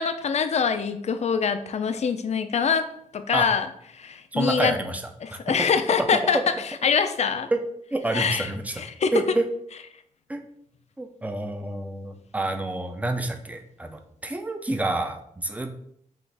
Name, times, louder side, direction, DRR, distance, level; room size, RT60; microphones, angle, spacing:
voice 1, 0.0-2.9 3.1-3.7 4.0-4.7 5.2-6.4 6.8-7.5 8.1-8.5 8.8-9.1, left 6 dB, 50° left, 10 dB, 0.4 m, -24 dB
voice 2, 4.3-5.0 5.5-5.7 6.0-6.4 7.5-7.6 7.9-8.8 9.1-9.5 10.3-10.4 11.0-15.7, right 2 dB, 10° right, 6 dB, 0.4 m, -28 dB
6.2 x 2.4 x 3.3 m, 0.70 s
wide cardioid pair, 125°, 14 cm